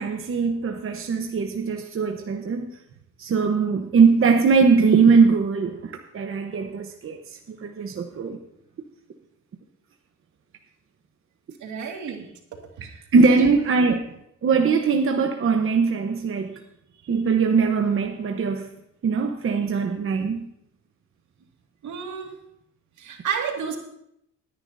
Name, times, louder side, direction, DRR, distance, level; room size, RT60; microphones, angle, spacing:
voice 1, 0.0-2.8 3.2-7.2 7.5-8.4 13.1-14.0 14.4-16.5 17.1-18.7 19.0-20.4, right 5 dB, 45° right, 4 dB, 1.0 m, -21 dB
voice 2, 11.6-12.3 12.8-13.5 21.8-22.3 23.0-23.8, right 6 dB, 75° right, 2 dB, 2.1 m, -31 dB
19.5 x 10.0 x 2.7 m, 0.76 s
cardioid pair, 90°, 30 cm